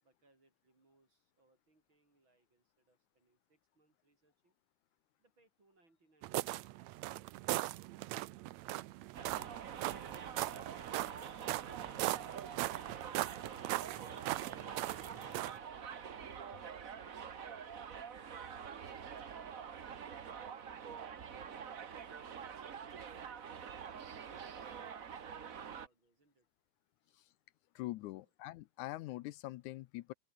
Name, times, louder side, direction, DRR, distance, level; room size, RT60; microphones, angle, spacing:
voice 1, 0.0-4.6 5.2-7.8 25.3-26.5 27.0-27.2 28.1-28.3, right 2 dB, 40° right, 7.5 m, -74 dB
sound 1, 6.2-15.6, right 17 dB, 75° right, 1.8 m, -39 dB
Subway metro underground, 9.1-25.9, right 7 dB, 60° right, 0.8 m, -46 dB
sound 2, 12.3-20.3, left 7 dB, 45° left, 2.7 m, -69 dB
voice 2, 27.8-30.1, left 17 dB, 80° left, 2.0 m, -43 dB
open air
omnidirectional pair, 3.5 m